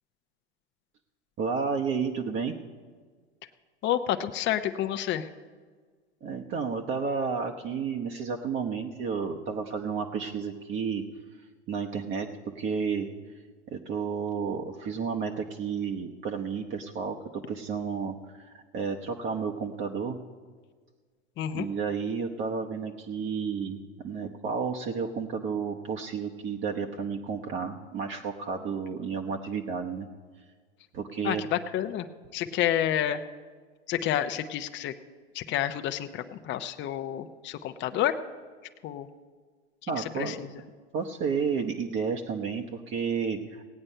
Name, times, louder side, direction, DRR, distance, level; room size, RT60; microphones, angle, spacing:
voice 1, 1.4-2.5 6.2-11.0 11.7-12.3 12.5-13.1 13.7-20.2 21.5-30.1 30.9-31.4 39.9-40.3 40.9-43.6, right 6 dB, 35° right, 1 dB, 1.0 m, -31 dB
voice 2, 3.8-5.3 21.4-21.7 31.2-32.1 32.3-33.2 33.9-34.9 35.3-38.2 38.8-39.1 39.8-40.6, left 11 dB, 35° left, 8 dB, 0.7 m, -29 dB
17.0 x 8.8 x 5.5 m, 1.5 s
hypercardioid pair, 100°, 34 cm